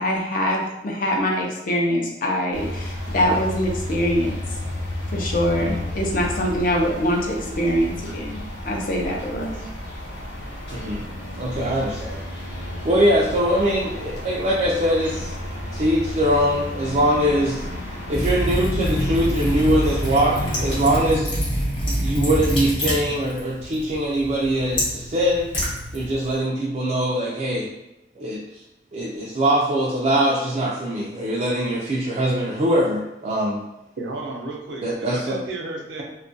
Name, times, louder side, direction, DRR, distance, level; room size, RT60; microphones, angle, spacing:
voice 1, 0.0-4.3 5.1-9.6, equal, 50° left, -1 dB, 0.5 m, -23 dB
sound 1, 2.5-21.1, left 1 dB, 70° left, 0.8 m, -32 dB
voice 2, 11.4-12.2 12.8-15.3 15.7-17.7 18.1-21.4 22.0-25.5 25.9-27.7 28.2-28.4 28.9-33.6 34.8-35.4, equal, 40° right, -5 dB, 0.3 m, -22 dB
Liquid, 18.1-26.4, equal, 30° left, 0.9 m, -26 dB
voice 3, 34.0-36.0, right 2 dB, 85° right, 0 dB, 0.5 m, -33 dB
2.3 x 2.1 x 2.6 m, 0.88 s
head